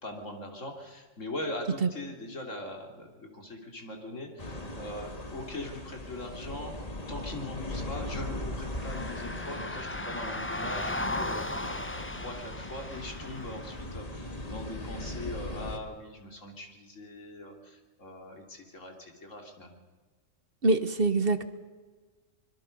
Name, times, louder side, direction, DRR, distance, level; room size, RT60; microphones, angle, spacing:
voice 1, 0.0-6.7 7.1-19.8, left 1 dB, 80° left, 3 dB, 3.5 m, -41 dB
sound 1, 4.4-15.8, left 1 dB, 30° left, 2.0 m, -39 dB
sound 2, 8.7-13.9, left 1 dB, 10° left, 0.7 m, -36 dB
voice 2, 20.6-21.4, right 3 dB, 50° right, 11 dB, 1.3 m, -24 dB
25.0 x 22.0 x 5.3 m, 1.4 s
omnidirectional pair, 1.3 m